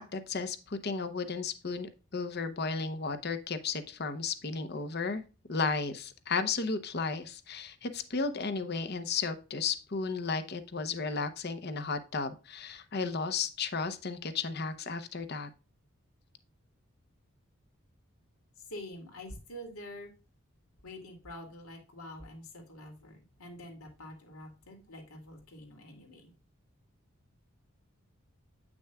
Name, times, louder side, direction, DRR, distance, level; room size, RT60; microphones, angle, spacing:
voice 1, 0.0-5.2 5.5-15.5, left 4 dB, 50° left, 9 dB, 0.8 m, -34 dB
voice 2, 18.7-20.1 20.8-26.3, left 1 dB, 90° left, 2 dB, 2.6 m, -46 dB
8.7 x 6.1 x 2.3 m, 0.33 s
head